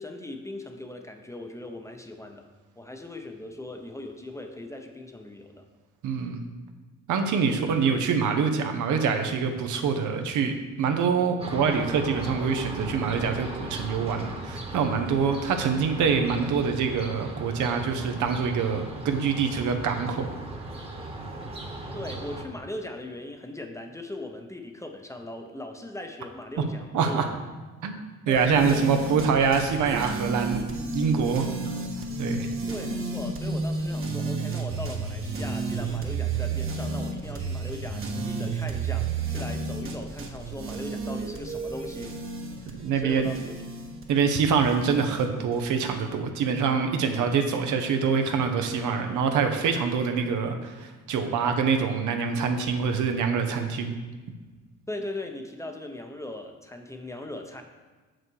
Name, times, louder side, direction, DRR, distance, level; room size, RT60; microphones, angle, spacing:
voice 1, 0.0-2.5 2.8-5.7 7.5-7.6 21.9-27.2 28.3-29.0 32.7-42.2 42.6-43.5 54.9-57.6, left 1 dB, 10° left, 4 dB, 0.8 m, -39 dB
voice 2, 6.0-6.4 7.1-20.3 26.9-27.3 27.8-28.0 28.3-30.6 30.9-31.5 32.2-32.5 42.7-43.3 44.1-54.0, right 6 dB, 80° right, 5 dB, 0.9 m, -25 dB
sound 1, 11.4-22.4, right 1 dB, 20° right, 1.3 m, -37 dB
sound 2, 28.4-45.6, right 3 dB, 45° right, 1.2 m, -32 dB
6.5 x 6.1 x 4.7 m, 1.3 s
cardioid pair, 90°, 30 cm